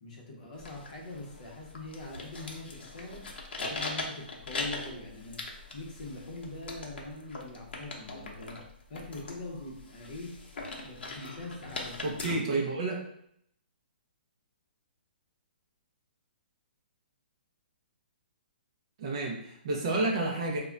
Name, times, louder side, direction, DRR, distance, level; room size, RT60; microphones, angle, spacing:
voice 1, 0.0-3.3 3.5-5.4 5.7-8.6 8.9-10.4 10.8-12.2, left 2 dB, 40° left, -1 dB, 0.7 m, -43 dB
sound 1, 0.5-12.3, left 3 dB, 80° left, 0.7 m, -41 dB
voice 2, 12.0-13.0 19.0-20.6, right 2 dB, 30° right, -1 dB, 0.4 m, -30 dB
2.2 x 2.1 x 3.7 m, 0.71 s
hypercardioid pair, 175°, 6 cm